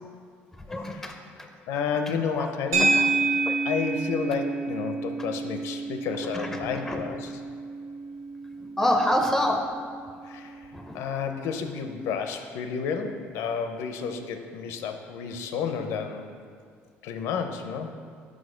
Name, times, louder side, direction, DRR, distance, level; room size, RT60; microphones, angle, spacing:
voice 1, 0.7-1.1 2.4-2.5 2.8-3.1 3.5-3.6 6.3-7.0 8.8-9.9 10.7-11.0, left 1 dB, 5° left, 4 dB, 0.5 m, -27 dB
voice 2, 1.7-2.9 3.6-7.3 10.2-10.6 10.9-16.3 17.0-17.9, left 6 dB, 85° left, 6 dB, 0.6 m, -31 dB
sound 1, 2.7-11.2, right 3 dB, 80° right, 1.4 m, -30 dB
6.3 x 4.9 x 5.0 m, 2.1 s
cardioid pair, 145°, 5 cm